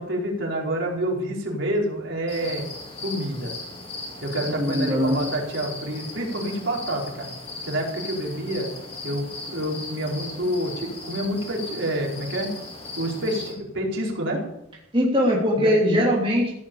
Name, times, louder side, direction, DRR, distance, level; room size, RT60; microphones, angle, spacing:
voice 1, 0.0-2.6 3.0-3.5 4.2-7.3 7.6-8.7 9.0-12.5 13.0-14.4 15.6-15.7, right 1 dB, 65° right, -1 dB, 4.6 m, -28 dB
sound 1, 2.3-13.5, left 2 dB, 30° left, 4.2 m, -37 dB
voice 2, 4.4-5.2 14.9-16.5, equal, 25° right, -3 dB, 3.0 m, -21 dB
15.5 x 8.6 x 8.7 m, 0.81 s
head